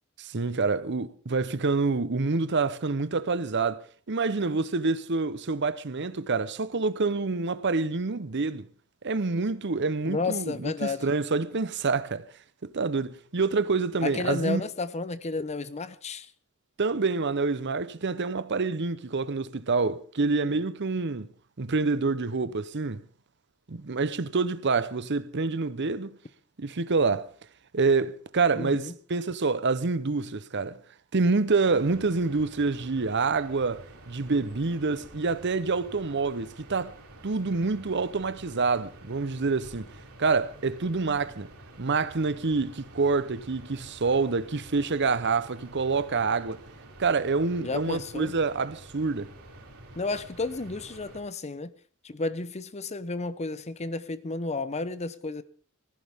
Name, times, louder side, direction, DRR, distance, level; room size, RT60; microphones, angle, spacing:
voice 1, 0.2-8.7 9.0-12.3 12.6-14.7 16.8-21.3 21.6-23.0 23.7-26.2 26.6-27.3 27.7-30.8 31.1-36.9 37.2-39.9 40.2-41.5 41.8-46.6 47.0-49.3, right 4 dB, 55° right, 0.8 m, -27 dB
voice 2, 10.0-11.0 14.0-16.3 28.5-28.9 47.6-48.3 50.0-51.7 52.0-55.4, left 3 dB, 30° left, 0.8 m, -32 dB
sound 1, 31.6-51.2, right 1 dB, 90° right, 4.0 m, -49 dB
20.0 x 15.0 x 3.6 m
head